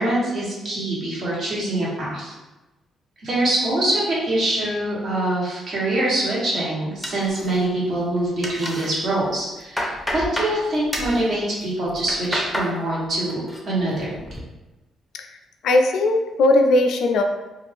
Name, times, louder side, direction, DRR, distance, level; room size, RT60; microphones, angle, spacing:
voice 1, 0.0-2.3 3.2-14.2, right 1 dB, 55° right, -6 dB, 1.3 m, -24 dB
sound 1, 7.0-7.9 8.2-8.9 9.3-10.6 10.9-11.2 11.8-12.7 13.1-13.6 14.0-14.4, equal, 5° left, 0.6 m, -29 dB
voice 2, 15.6-17.2, left 2 dB, 75° left, 5 dB, 0.3 m, -18 dB
2.4 x 2.4 x 3.4 m, 1.1 s
cardioid pair, 90°, 0 cm